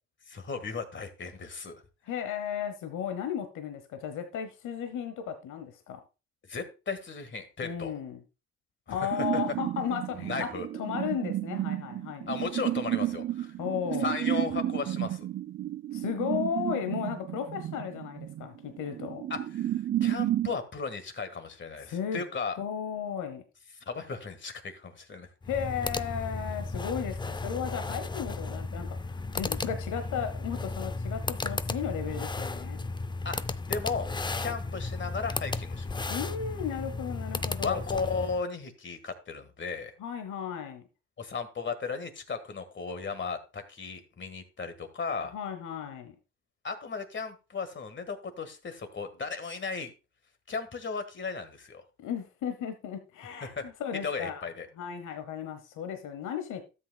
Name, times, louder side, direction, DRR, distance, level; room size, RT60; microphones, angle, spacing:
voice 1, 0.3-1.8 6.5-7.9 8.9-9.4 10.2-10.7 12.3-13.5 14.0-15.3 19.3-19.7 20.0-22.6 23.9-25.3 33.2-33.4 33.7-34.1 34.4-36.1 37.6-39.9 41.2-45.3 46.6-49.9 50.5-51.8 53.4-53.7 54.0-54.7, left 5 dB, 40° left, 9 dB, 1.7 m, -35 dB
voice 2, 2.0-6.0 7.6-8.2 8.9-10.5 10.8-12.3 13.6-14.1 15.9-19.2 21.8-22.2 22.5-23.4 25.5-32.8 36.1-37.8 40.0-40.8 45.3-46.1 52.0-54.5 54.8-56.6, left 8 dB, 80° left, 8 dB, 1.1 m, -35 dB
sound 1, 9.1-20.6, right 12 dB, 40° right, 0.4 m, -32 dB
sound 2, 25.4-38.4, left 3 dB, 15° left, 0.4 m, -34 dB
12.5 x 7.8 x 2.3 m, 0.30 s
cardioid pair, 90°, 30 cm